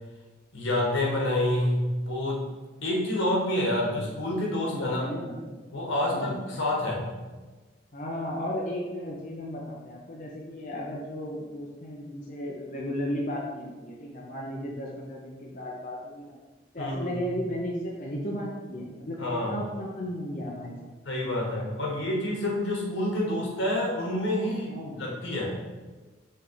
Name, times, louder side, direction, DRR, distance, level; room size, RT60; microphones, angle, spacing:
voice 1, 0.5-1.8 2.1-2.4 2.8-5.1 5.7-7.1 16.8-17.2 19.2-19.6 21.1-25.5, left 1 dB, 80° left, -2 dB, 1.7 m, -28 dB
voice 2, 4.6-5.4 6.0-6.4 7.9-16.3 16.7-20.9 24.7-25.1, equal, 40° left, -3 dB, 0.7 m, -35 dB
5.7 x 3.3 x 4.9 m, 1.3 s
head